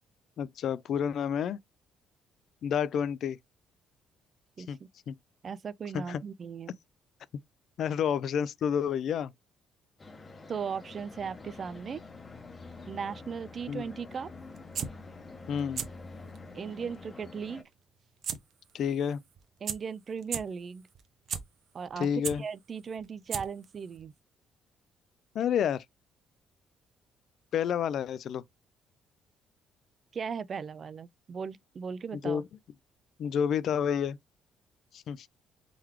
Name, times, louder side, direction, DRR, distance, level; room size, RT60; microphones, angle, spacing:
voice 1, 0.4-1.6 2.6-3.4 4.7-4.8 5.1-5.2 5.9-6.2 7.8-9.3 13.7-13.8 15.5-15.8 18.7-19.2 22.0-22.4 25.3-25.8 27.5-28.4 32.2-32.4 33.2-34.2 34.9-35.3, left 8 dB, 55° left, 0.3 m, -29 dB
voice 2, 5.4-6.8 10.5-12.0 12.9-14.3 16.5-17.6 19.6-20.9 21.7-22.1 22.4-24.1 30.1-32.4, right 6 dB, 35° right, 0.3 m, -37 dB
sound 1, 10.0-17.6, left 3 dB, 20° left, 0.8 m, -47 dB
sound 2, 14.6-14.9 15.6-15.9 16.3-16.4 18.2-18.4 18.7-18.8 19.4-19.5 19.7-19.8 20.2-20.4 21.0-21.4 21.9-22.4 23.0-23.1 23.3-23.7 24.0-24.1, right 8 dB, 50° right, 0.7 m, -33 dB
4.5 x 3.8 x 3.0 m
cardioid pair, 155°, 0 cm